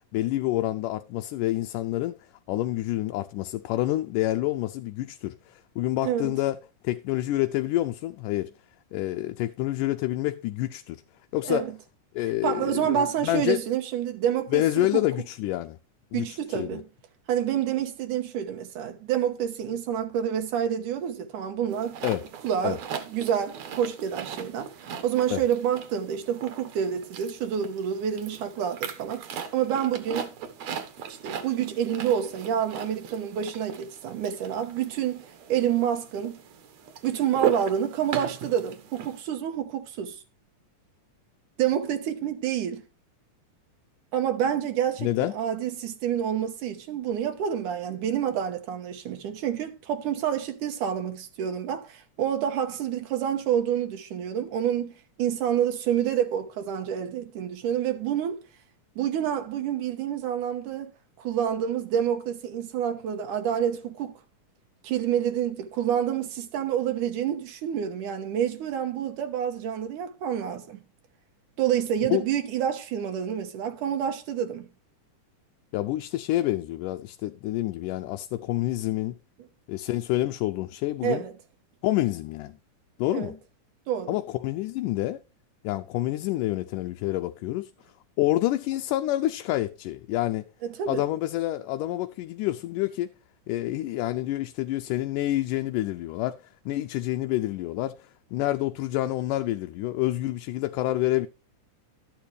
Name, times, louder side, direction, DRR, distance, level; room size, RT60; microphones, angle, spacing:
voice 1, 0.1-2.2 2.5-6.6 6.8-8.5 8.9-11.0 11.3-11.7 12.1-13.6 14.5-15.8 16.1-16.8 22.0-22.2 22.6-22.8 25.3-25.4 45.0-45.3 72.1-72.2 75.7-79.2 79.7-81.2 81.8-82.6 83.0-83.4 84.1-85.2 85.6-87.7 88.2-90.5 90.9-93.1 93.5-96.4 96.7-101.3, left 15 dB, 90° left, 2.2 m, -28 dB
voice 2, 6.0-6.3 11.5-11.7 12.4-15.0 16.1-16.8 17.3-22.0 22.4-29.3 29.5-30.3 31.1-36.4 37.0-40.2 41.6-42.8 44.1-58.4 59.0-64.1 64.8-70.8 71.6-74.7 81.0-81.3 83.1-83.3 83.9-84.2 90.6-91.1, right 9 dB, 80° right, 2.7 m, -28 dB
sound 1, 21.7-39.2, right 8 dB, 65° right, 2.4 m, -38 dB
12.5 x 9.2 x 3.3 m
omnidirectional pair, 3.6 m